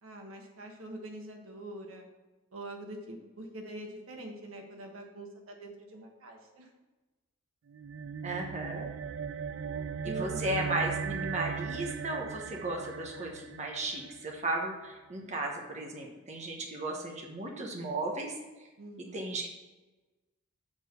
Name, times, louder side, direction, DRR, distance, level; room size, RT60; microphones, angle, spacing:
voice 1, 0.0-2.1 2.5-6.7 10.0-10.5 18.8-19.4, right 1 dB, 90° right, 2 dB, 1.3 m, -44 dB
sound 1, 7.7-14.4, right 6 dB, 65° right, 0.3 m, -38 dB
voice 2, 8.2-8.9 10.0-18.4 19.1-19.5, right 2 dB, 35° right, 0 dB, 1.2 m, -35 dB
7.4 x 4.5 x 6.6 m, 1.2 s
head